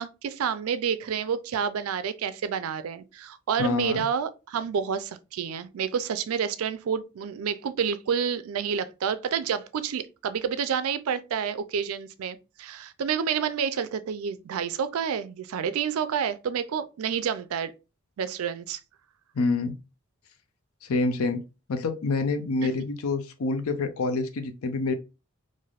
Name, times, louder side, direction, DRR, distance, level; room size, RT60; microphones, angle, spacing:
voice 1, 0.0-17.7 18.2-18.8 22.6-22.7, right 7 dB, 75° right, 0.4 m, -29 dB
voice 2, 3.6-4.0 19.3-19.8 20.8-21.4 21.7-24.9, left 3 dB, 70° left, 0.5 m, -27 dB
3.3 x 2.5 x 2.3 m
head